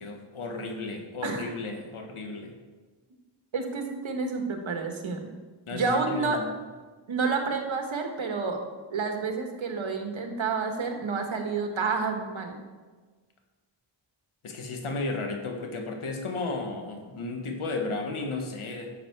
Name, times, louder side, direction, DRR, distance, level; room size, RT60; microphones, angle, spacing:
voice 1, 0.0-2.5 5.7-6.5 14.4-18.9, left 3 dB, 80° left, 3 dB, 1.6 m, -34 dB
voice 2, 3.5-5.3 5.7-6.4 7.1-8.6 8.9-12.6, right 4 dB, 70° right, 4 dB, 1.6 m, -29 dB
11.0 x 7.2 x 4.7 m, 1.4 s
wide cardioid pair, 100°, 49 cm